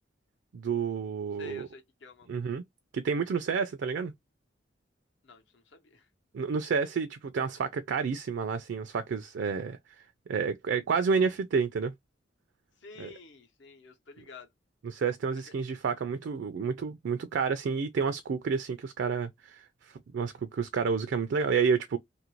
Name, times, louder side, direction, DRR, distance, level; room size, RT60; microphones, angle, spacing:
voice 1, 0.5-1.7 2.3-2.6 2.9-4.1 6.3-9.8 10.3-11.9 13.0-13.1 14.8-22.0, right 5 dB, 65° right, 0.4 m, -30 dB
voice 2, 1.4-2.3 5.2-6.1 12.8-14.5 15.3-15.5, left 3 dB, 70° left, 0.9 m, -49 dB
2.7 x 2.5 x 2.9 m
head